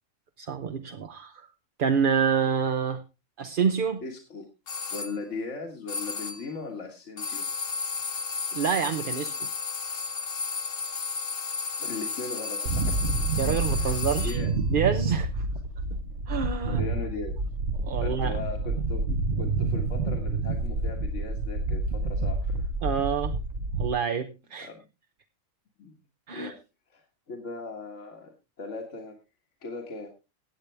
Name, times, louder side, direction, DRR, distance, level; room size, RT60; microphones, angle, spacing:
voice 1, 0.4-1.5 1.8-3.0 3.4-4.0 8.5-9.5 13.4-14.4 14.7-15.5 15.9-16.0 16.3-16.9 17.8-18.4 22.8-23.4 23.8-24.7 26.3-26.5, right 7 dB, 50° right, 0.8 m, -27 dB
voice 2, 4.0-4.5 4.9-7.5 11.8-13.2 13.7-14.0 14.2-14.5 16.6-17.4 18.0-19.1 19.4-22.7 24.6-24.8 25.8-25.9 26.3-26.6 26.9-28.3 28.6-29.2 29.6-30.1, left 3 dB, 65° left, 2.0 m, -38 dB
sound 1, 4.7-5.2 5.9-6.5 7.2-14.5, left 5 dB, 50° left, 1.2 m, -33 dB
sound 2, 12.7-23.9, right 3 dB, 65° right, 1.3 m, -28 dB
17.0 x 8.3 x 3.4 m
omnidirectional pair, 1.3 m